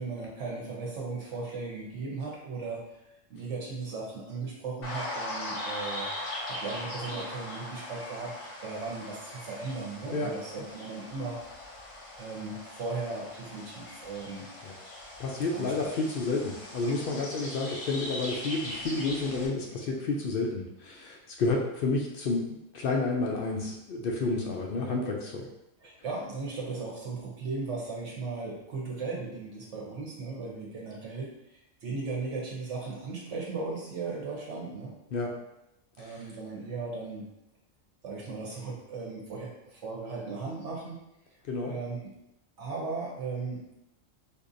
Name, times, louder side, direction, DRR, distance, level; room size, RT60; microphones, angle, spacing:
voice 1, 0.0-2.8 3.3-6.1 6.5-8.3 8.6-11.4 12.2-14.5 15.5-15.7 25.8-34.9 36.0-37.3 38.0-41.0 41.6-42.0 42.6-43.6, right 4 dB, 70° right, -3 dB, 1.1 m, -37 dB
sound 1, 4.8-19.5, left 1 dB, 85° left, 1.3 m, -40 dB
voice 2, 15.2-25.5 35.1-35.3 36.1-36.2 41.5-41.7, left 3 dB, 65° left, 0 dB, 0.6 m, -30 dB
4.4 x 2.6 x 2.5 m, 0.86 s
omnidirectional pair, 1.3 m